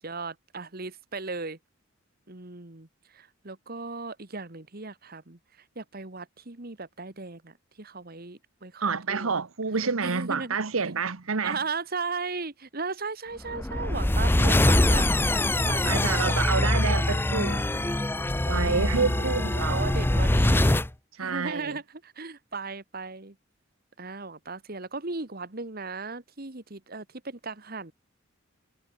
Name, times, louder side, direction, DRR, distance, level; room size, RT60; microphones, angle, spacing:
voice 1, 0.0-1.6 2.3-5.4 5.7-9.3 10.0-10.6 11.4-15.1 15.7-15.9 16.6-17.1 19.0-20.8 21.2-23.3 24.0-27.9, right 4 dB, 45° right, 1.7 m, -37 dB
voice 2, 8.8-11.6 15.8-17.6 18.5-20.0 21.2-21.8, right 4 dB, 90° right, 1.2 m, -28 dB
sound 1, 13.5-20.9, left 1 dB, 10° left, 0.6 m, -23 dB
head